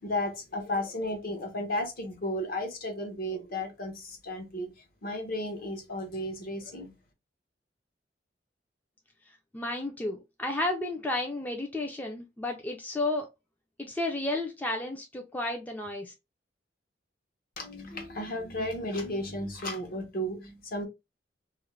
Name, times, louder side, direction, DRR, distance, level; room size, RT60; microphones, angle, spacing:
voice 1, 0.0-4.7 5.0-6.9 17.6-20.9, left 1 dB, 55° left, 0.8 m, -34 dB
voice 2, 9.5-13.3 13.8-16.1, left 2 dB, 10° left, 0.4 m, -32 dB
2.4 x 2.0 x 3.0 m
head